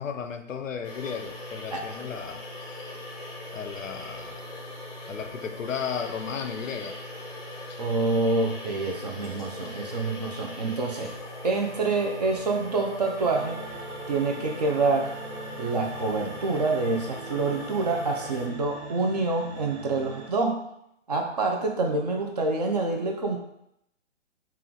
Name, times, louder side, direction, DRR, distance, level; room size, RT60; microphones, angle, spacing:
voice 1, 0.0-2.9 3.5-4.4 5.1-7.0 7.7-7.8, left 7 dB, 90° left, 8 dB, 0.6 m, -35 dB
sound 1, 0.8-18.5, left 2 dB, 10° left, 0.6 m, -40 dB
voice 2, 7.8-11.1 11.4-13.6 14.1-15.1 15.6-20.6 21.1-23.4, right 3 dB, 35° right, 1 dB, 0.5 m, -27 dB
sound 2, 13.2-20.3, right 4 dB, 60° right, 0.8 m, -41 dB
4.3 x 2.4 x 3.7 m, 0.79 s
hypercardioid pair, 150°, 38 cm